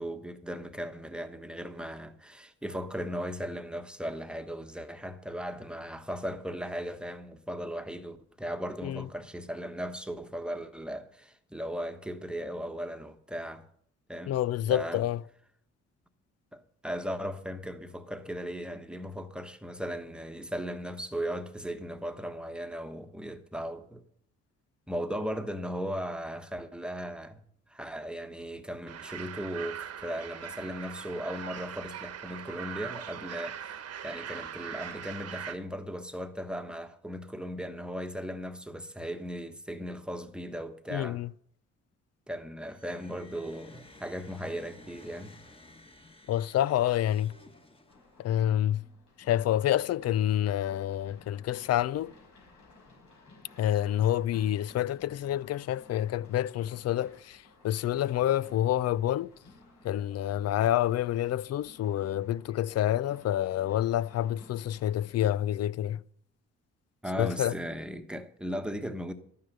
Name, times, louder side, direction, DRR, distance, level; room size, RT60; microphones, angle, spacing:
voice 1, 0.0-13.7 14.1-14.3 14.7-15.0 16.5-24.0 24.9-27.4 27.7-41.2 42.3-45.3 67.0-69.1, equal, 5° right, 1.2 m, -37 dB
voice 2, 14.3-15.2 40.9-41.3 46.3-47.3 48.2-48.8 49.2-52.1 53.6-59.3 59.8-66.0 67.2-67.5, left 12 dB, 55° left, 0.4 m, -28 dB
sound 1, 28.9-35.5, right 8 dB, 55° right, 1.2 m, -41 dB
sound 2, 42.6-48.3, left 2 dB, 20° left, 1.5 m, -54 dB
sound 3, 47.9-65.0, left 3 dB, 85° left, 5.3 m, -57 dB
12.5 x 9.6 x 6.6 m
cardioid pair, 90°, 30 cm